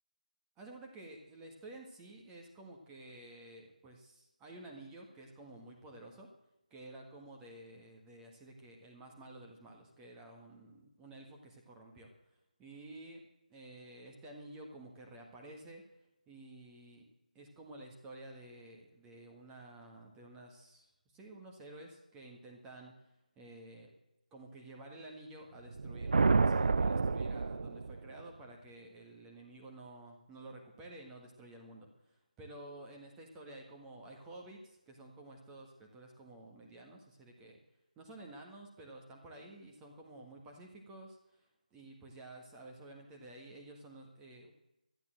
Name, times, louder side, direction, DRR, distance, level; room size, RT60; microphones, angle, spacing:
voice 1, 0.6-6.3 6.7-13.2 13.5-15.8 16.3-17.0 17.4-23.9 24.3-37.6 38.0-44.5, right 2 dB, 10° right, 1 dB, 1.6 m, -52 dB
sound 1, 25.7-28.2, right 4 dB, 60° right, 0.4 m, -29 dB
13.5 x 9.8 x 7.6 m, 0.93 s
figure-of-eight pair, 155°, 4 cm